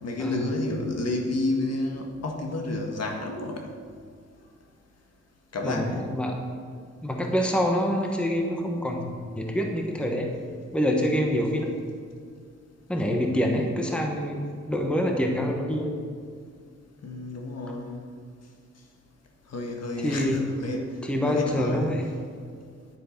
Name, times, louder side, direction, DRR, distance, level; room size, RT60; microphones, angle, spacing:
voice 1, 0.0-3.7 5.5-6.1 17.0-18.0 19.5-20.9 21.3-21.9, left 2 dB, 60° left, 2 dB, 1.6 m, -30 dB
voice 2, 5.6-6.4 7.0-10.3 10.7-11.7 12.9-15.9 20.0-20.5 21.0-22.1, equal, 5° left, 1 dB, 1.1 m, -26 dB
10.5 x 9.3 x 5.2 m, 2.1 s
wide cardioid pair, 170°, 29 cm